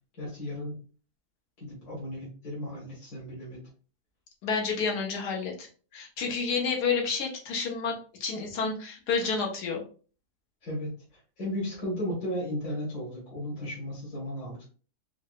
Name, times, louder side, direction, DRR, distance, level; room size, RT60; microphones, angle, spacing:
voice 1, 0.2-0.8 1.6-3.6 10.6-10.9 11.4-14.7, left 1 dB, 70° left, -5 dB, 2.0 m, -35 dB
voice 2, 4.4-5.7 5.9-9.8, left 5 dB, 90° left, 0 dB, 1.4 m, -30 dB
4.6 x 2.0 x 2.4 m, 0.40 s
omnidirectional pair, 1.7 m